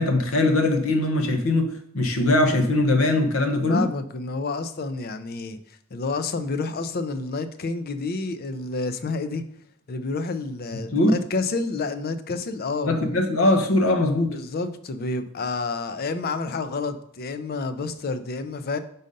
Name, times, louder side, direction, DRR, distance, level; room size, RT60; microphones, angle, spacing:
voice 1, 0.0-3.8 10.9-11.2 12.8-14.3, left 2 dB, 80° left, 6 dB, 0.9 m, -21 dB
voice 2, 3.7-5.6 5.9-9.4 9.9-13.2 14.3-18.8, left 3 dB, 50° left, 11 dB, 0.5 m, -29 dB
5.2 x 4.0 x 5.2 m, 0.69 s
head